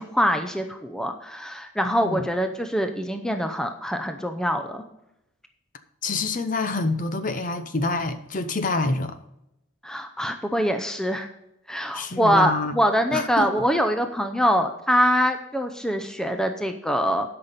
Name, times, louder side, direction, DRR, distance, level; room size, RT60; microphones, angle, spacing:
voice 1, 0.0-4.8 9.8-11.3 11.7-17.3, equal, 5° left, 0.6 m, -24 dB
voice 2, 1.8-2.2 6.0-9.2 11.9-12.7 13.1-13.6, left 3 dB, 40° left, 0.7 m, -27 dB
12.0 x 5.8 x 5.2 m
head